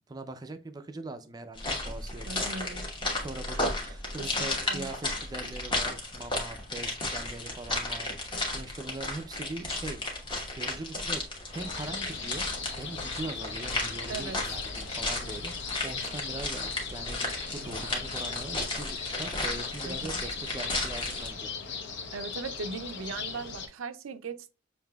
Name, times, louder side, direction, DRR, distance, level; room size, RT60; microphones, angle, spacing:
voice 1, 0.1-2.5 3.2-10.0 10.6-12.5 12.8-21.5, right 2 dB, 20° right, 0.4 m, -41 dB
sound 1, 1.6-21.3, left 2 dB, 25° left, 1.1 m, -34 dB
voice 2, 2.3-2.8 4.2-4.9 14.1-14.4 19.8-20.2 22.1-24.5, right 4 dB, 80° right, 0.4 m, -39 dB
sound 2, 11.5-23.7, left 5 dB, 60° left, 0.8 m, -38 dB
6.7 x 2.7 x 2.3 m
head